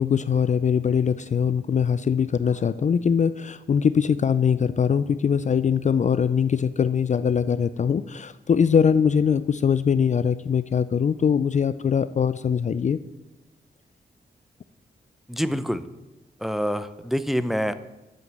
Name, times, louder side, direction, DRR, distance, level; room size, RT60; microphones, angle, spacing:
voice 1, 0.0-13.0, left 7 dB, 45° left, 14 dB, 0.4 m, -22 dB
voice 2, 15.3-15.8 16.4-17.7, equal, ahead, 12 dB, 0.6 m, -26 dB
7.7 x 6.5 x 7.4 m, 1.0 s
cardioid pair, 60°, 18 cm